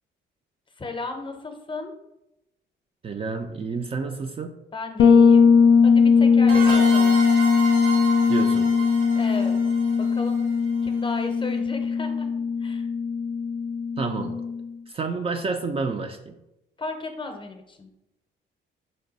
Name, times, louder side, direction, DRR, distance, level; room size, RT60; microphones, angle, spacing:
voice 1, 0.8-1.9 4.7-5.5 5.8-7.2 9.1-9.6 10.0-10.4 10.8-12.3 12.6-12.9 16.8-17.9, left 3 dB, 25° left, 5 dB, 0.7 m, -35 dB
voice 2, 3.0-4.6 8.3-8.7 14.0-14.4 14.9-16.4, right 4 dB, 30° right, 5 dB, 0.4 m, -29 dB
Bass guitar, 5.0-14.7, left 5 dB, 60° left, 0.4 m, -19 dB
sound 1, 6.5-11.0, right 3 dB, 75° right, 1.2 m, -31 dB
5.1 x 2.2 x 3.9 m, 0.90 s
cardioid pair, 90°, 20 cm